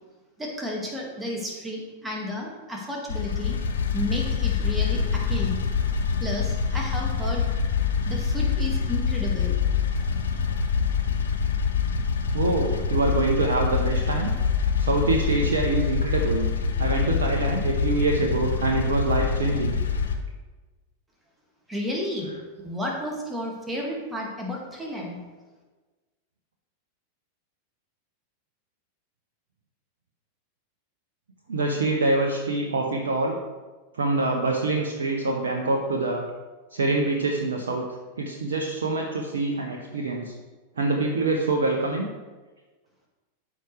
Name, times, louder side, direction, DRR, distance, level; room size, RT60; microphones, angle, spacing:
voice 1, 0.4-3.6 3.9-5.6 6.2-7.4 8.1-9.6 21.7-22.3 22.6-25.2, left 1 dB, 10° right, -1 dB, 1.9 m, -32 dB
sound 1, 3.1-20.2, left 6 dB, 65° left, 0.8 m, -25 dB
voice 2, 12.3-14.3 14.8-16.5 16.8-19.8 31.5-33.4 33.9-36.3 36.7-37.8 38.2-40.3 40.8-42.1, right 2 dB, 65° right, 1 dB, 0.8 m, -25 dB
13.5 x 4.9 x 3.3 m, 1.3 s
figure-of-eight pair, 90°, 0 cm